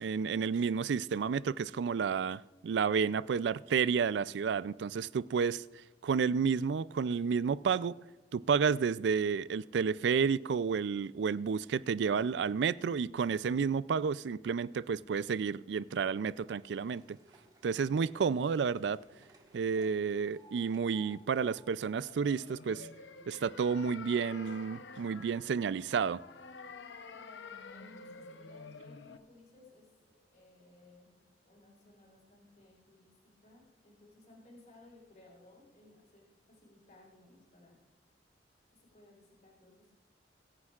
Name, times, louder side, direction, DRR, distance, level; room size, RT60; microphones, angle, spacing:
voice 1, 0.0-5.6 6.0-7.9 8.3-17.2 17.6-19.0 19.5-22.9 23.3-26.2, right 6 dB, 70° right, 0.3 m, -31 dB
sound 1, 16.3-24.5 24.9-25.8 26.5-26.6 26.9-27.0 27.2-27.3 28.2-28.3 28.9-29.0 29.7-29.8 30.2-30.3, right 1 dB, 20° right, 1.4 m, -63 dB
sound 2, 22.1-29.2, left 4 dB, 85° left, 0.7 m, -49 dB
voice 2, 27.0-31.1 31.4-33.1 33.4-37.8 38.7-39.9, left 2 dB, 45° left, 4.0 m, -60 dB
23.0 x 9.7 x 2.4 m
head